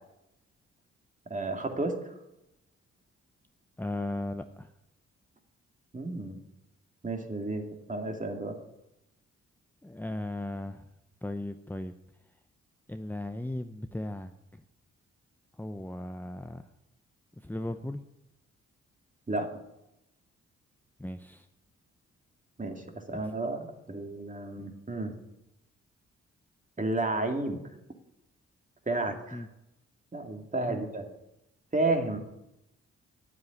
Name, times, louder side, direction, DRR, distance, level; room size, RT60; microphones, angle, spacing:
voice 1, 1.3-2.1 5.9-6.4 7.0-8.6 19.3-19.5 22.6-25.1 26.8-27.6 28.9-29.4 30.1-31.1 31.7-32.2, right 2 dB, 25° right, 4 dB, 2.5 m, -32 dB
voice 2, 3.8-4.7 9.8-10.9 11.2-11.9 12.9-14.6 15.6-16.7 17.4-18.0 21.0-21.5 23.1-23.3 24.6-24.7 29.3-29.5 30.7-30.8, left 1 dB, 5° left, 7 dB, 0.7 m, -37 dB
9.6 x 8.7 x 9.3 m, 0.89 s
cardioid pair, 60°, 30 cm